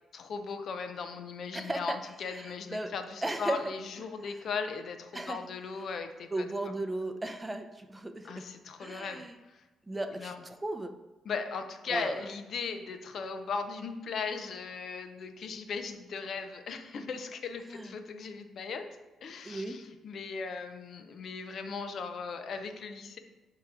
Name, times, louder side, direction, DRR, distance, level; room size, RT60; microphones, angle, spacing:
voice 1, 0.1-6.5 8.2-9.6 10.2-10.4 11.2-18.9 19.2-23.2, left 5 dB, 60° left, 8 dB, 0.7 m, -38 dB
voice 2, 1.5-2.0 2.3-2.9 3.2-3.6 4.3-4.4 5.1-5.4 6.3-8.5 8.8-9.3 9.9-10.9 11.9-12.2 17.7-17.9 19.4-19.8, right 2 dB, 15° right, 7 dB, 0.6 m, -36 dB
8.6 x 3.0 x 4.9 m, 1.2 s
cardioid pair, 90°, 0 cm